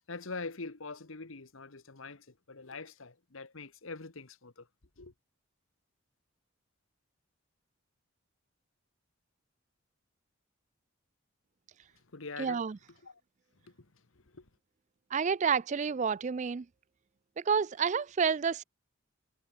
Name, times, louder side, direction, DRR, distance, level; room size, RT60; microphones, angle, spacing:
voice 1, 0.1-4.7 5.0-5.1 12.1-12.6 13.0-13.2 13.6-14.5, left 3 dB, 70° left, 1.4 m, -44 dB
voice 2, 12.4-12.8 15.1-16.7 17.4-18.6, right 6 dB, 35° right, 0.3 m, -29 dB
head